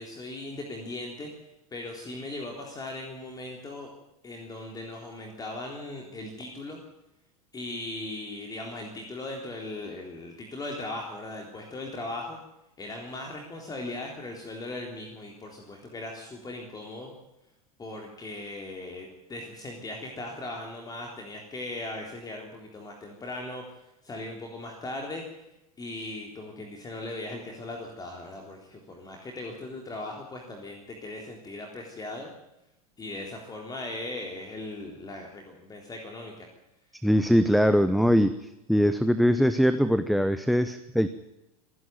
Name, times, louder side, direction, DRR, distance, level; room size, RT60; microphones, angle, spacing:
voice 1, 0.0-3.9 4.2-6.8 7.5-12.4 12.8-17.1 17.8-25.2 25.8-32.3 33.0-36.5, left 2 dB, 20° left, 1 dB, 3.8 m, -38 dB
voice 2, 37.0-38.3 38.7-41.1, equal, ahead, 13 dB, 0.9 m, -22 dB
25.5 x 11.0 x 9.3 m, 0.89 s
figure-of-eight pair, 80°, 19 cm